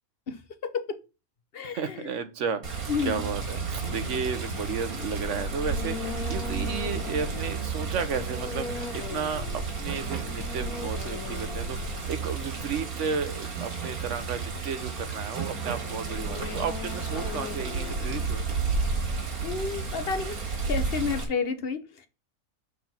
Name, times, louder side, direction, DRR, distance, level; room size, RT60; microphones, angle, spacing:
voice 1, 0.3-1.0 1.5-2.1 2.9-3.3 19.4-22.1, left 5 dB, 45° left, 8 dB, 1.0 m, -31 dB
voice 2, 1.6-18.6, right 6 dB, 60° right, 10 dB, 1.2 m, -33 dB
Water, 2.6-21.2, right 4 dB, 90° right, 2.1 m, -32 dB
sound 1, 3.8-20.2, left 5 dB, 90° left, 1.3 m, -42 dB
6.2 x 4.2 x 5.8 m, 0.28 s
omnidirectional pair, 1.5 m